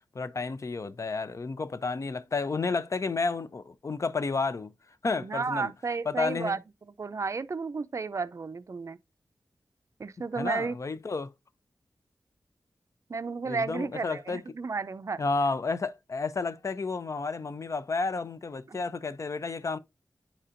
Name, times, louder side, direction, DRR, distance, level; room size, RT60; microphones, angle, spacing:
voice 1, 0.1-4.7 5.0-5.7 6.1-6.6 10.4-11.3 13.4-14.4 15.2-19.8, left 4 dB, 50° left, 0.6 m, -31 dB
voice 2, 5.2-6.6 7.0-9.0 10.0-10.8 13.1-15.2 18.7-18.8, right 4 dB, 45° right, 0.4 m, -32 dB
10.0 x 4.2 x 2.5 m
wide cardioid pair, 85°, 7 cm